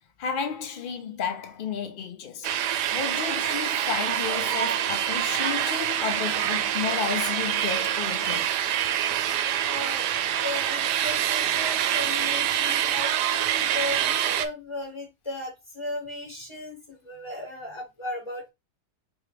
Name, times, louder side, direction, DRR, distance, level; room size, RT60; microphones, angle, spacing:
voice 1, 0.2-2.6 2.9-8.5, left 7 dB, 80° left, 0.4 m, -32 dB
sound 1, 2.4-14.5, right 10 dB, 85° right, 1.2 m, -26 dB
voice 2, 9.7-18.5, left 1 dB, 15° left, 2.7 m, -36 dB
4.8 x 3.1 x 3.3 m
omnidirectional pair, 1.7 m